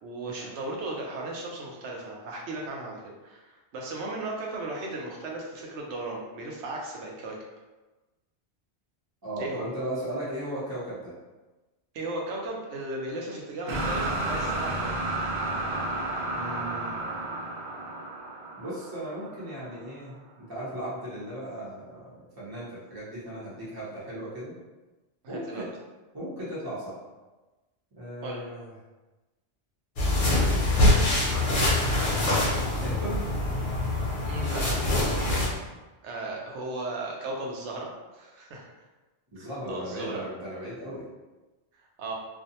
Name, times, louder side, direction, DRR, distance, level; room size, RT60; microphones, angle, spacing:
voice 1, 0.0-7.4 9.4-9.7 11.9-14.9 25.2-25.6 28.2-28.4 34.3-34.8 36.0-38.7 39.4-40.2 42.0-42.1, right 2 dB, 90° right, -1 dB, 0.9 m, -36 dB
voice 2, 9.2-11.1 16.2-17.4 18.6-24.5 25.3-25.7 26.1-27.0 28.0-28.7 31.3-32.5 32.7-33.2 39.3-41.1, right 1 dB, 20° right, -9 dB, 0.7 m, -37 dB
sound 1, 13.7-19.7, right 2 dB, 60° right, 0.7 m, -32 dB
sound 2, 30.0-35.5, left 2 dB, 50° left, 0.8 m, -24 dB
2.5 x 2.1 x 2.7 m, 1.1 s
omnidirectional pair, 1.1 m